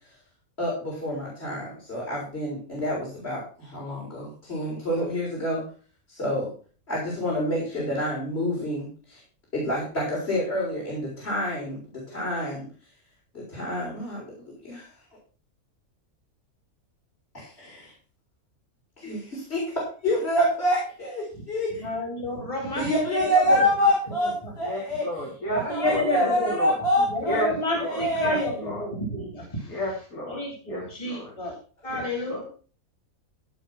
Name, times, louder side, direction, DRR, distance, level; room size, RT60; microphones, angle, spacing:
voice 1, 0.6-5.6 6.1-6.5 6.9-9.2 9.5-12.7 13.3-14.9 17.3-17.9 19.0-21.9 22.7-25.2 25.7-27.4 27.8-28.5, equal, 45° left, -3 dB, 4.9 m, -27 dB
voice 2, 21.8-23.6 24.2-24.5 25.5-26.5 27.1-29.8 30.3-31.6 31.8-32.4, left 2 dB, 25° left, 1 dB, 3.2 m, -30 dB
voice 3, 24.6-26.8 27.2-27.5 27.7-28.8 29.7-30.4 30.7-31.3 31.9-32.4, equal, 85° left, -3 dB, 3.6 m, -33 dB
15.5 x 5.3 x 5.8 m, 0.39 s
omnidirectional pair, 1.5 m